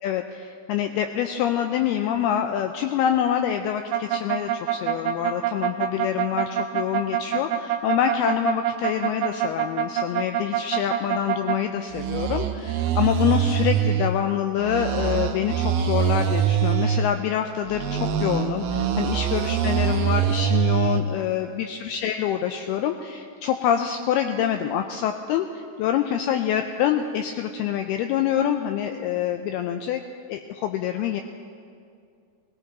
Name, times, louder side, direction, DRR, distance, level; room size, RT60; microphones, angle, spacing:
voice 1, 0.0-30.0 30.3-31.2, left 9 dB, 85° left, 6 dB, 2.3 m, -26 dB
sound 1, 3.9-11.6 11.9-14.1 14.6-17.1 17.6-21.0, right 9 dB, 85° right, 1.9 m, -24 dB
19.5 x 17.5 x 4.1 m, 2.3 s
omnidirectional pair, 5.0 m